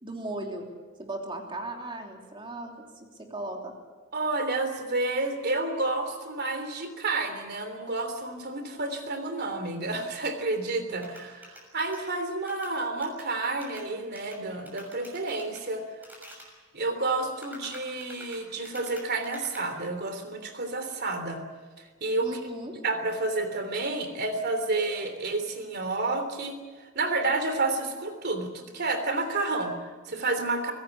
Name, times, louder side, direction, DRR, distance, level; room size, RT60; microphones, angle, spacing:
voice 1, 0.0-0.7 1.0-3.7 22.2-22.8, right 1 dB, 25° right, 1 dB, 3.2 m, -37 dB
voice 2, 4.1-15.8 16.7-21.4 21.8-22.4 22.8-26.6 26.9-30.7, right 2 dB, 55° right, 8 dB, 3.3 m, -30 dB
sound 1, 11.0-13.3 13.6-13.9 14.2-14.4 14.6-15.6 16.0-16.5 17.3-19.6, equal, 10° right, 6.6 m, -48 dB
24.0 x 17.0 x 8.4 m, 1.4 s
head